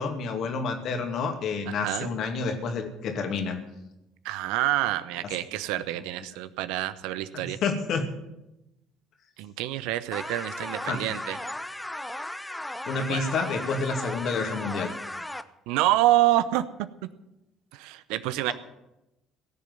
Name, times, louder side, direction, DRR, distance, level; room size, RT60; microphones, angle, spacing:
voice 1, 0.0-3.6 7.3-8.1 10.9-11.0 12.9-14.9, left 4 dB, 55° left, 5 dB, 2.5 m, -29 dB
voice 2, 1.7-2.1 4.2-7.6 9.4-11.4 13.1-13.3 15.7-16.6 17.7-18.5, right 15 dB, 70° right, 14 dB, 0.8 m, -27 dB
sound 1, 10.1-15.4, left 1 dB, 10° left, 0.9 m, -36 dB
17.0 x 7.4 x 9.5 m, 0.92 s
hypercardioid pair, 55°, 0 cm